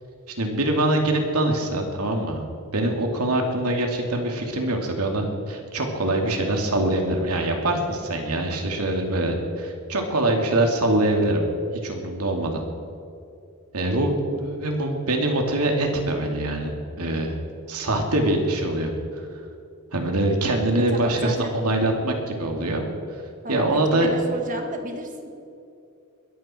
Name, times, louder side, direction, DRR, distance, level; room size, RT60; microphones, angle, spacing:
voice 1, 0.4-2.4 2.7-11.5 11.8-12.6 13.7-17.3 17.7-19.3 19.9-22.8 23.1-23.2 23.5-24.1, right 1 dB, 80° right, 2 dB, 2.7 m, -24 dB
voice 2, 20.9-21.6 23.4-25.3, right 1 dB, 35° right, 4 dB, 1.7 m, -34 dB
20.5 x 15.0 x 4.5 m, 2.6 s
head